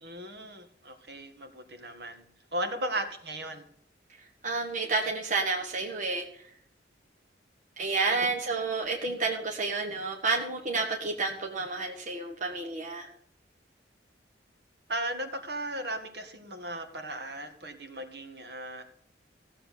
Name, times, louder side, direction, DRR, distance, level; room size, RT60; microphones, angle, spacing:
voice 1, 0.0-2.3 2.5-3.6 14.9-18.8, right 1 dB, 60° right, 6 dB, 1.9 m, -36 dB
voice 2, 4.4-6.3 7.8-13.1, right 3 dB, 45° right, 0 dB, 1.5 m, -30 dB
15.5 x 7.6 x 6.8 m, 0.64 s
head